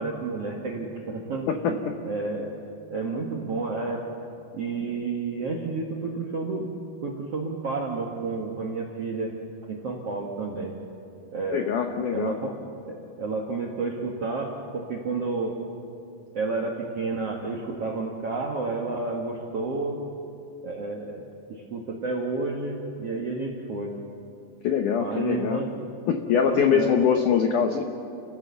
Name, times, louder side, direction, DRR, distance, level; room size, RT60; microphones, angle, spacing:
voice 1, 0.0-2.5 2.9-4.0 4.5-6.7 7.0-9.3 9.7-10.7 11.3-11.6 12.1-12.5 12.9-15.5 16.3-20.0 20.6-23.9 25.0-25.7 26.5-27.0, right 3 dB, 65° right, -1 dB, 1.5 m, -30 dB
voice 2, 11.5-12.3 24.6-25.6 26.1-27.8, left 7 dB, 90° left, 5 dB, 1.7 m, -23 dB
29.5 x 16.0 x 7.0 m, 2.6 s
omnidirectional pair, 5.1 m